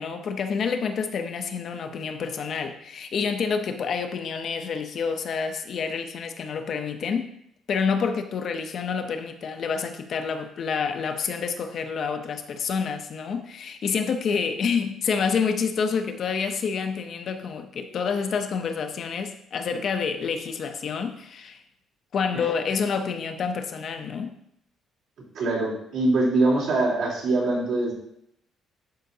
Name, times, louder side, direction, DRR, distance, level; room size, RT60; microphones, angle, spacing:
voice 1, 0.0-7.3 7.7-21.6 22.1-24.4, left 6 dB, 40° left, 7 dB, 0.6 m, -28 dB
voice 2, 25.3-27.9, right 2 dB, 60° right, -5 dB, 3.3 m, -23 dB
11.5 x 5.6 x 2.7 m, 0.74 s
cardioid pair, 180°, 0 cm